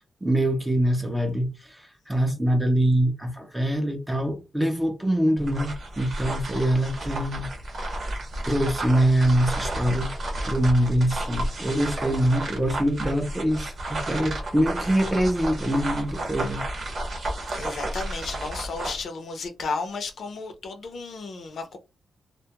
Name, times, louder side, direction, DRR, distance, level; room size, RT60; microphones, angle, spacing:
voice 1, 0.2-7.5 8.4-10.1 10.4-16.6, right 1 dB, 10° right, 0.5 m, -24 dB
sound 1, 5.4-19.0, right 1 dB, 50° right, 0.8 m, -32 dB
voice 2, 17.5-21.8, left 4 dB, 55° left, 0.6 m, -33 dB
2.2 x 2.1 x 2.8 m
wide cardioid pair, 170°, 0 cm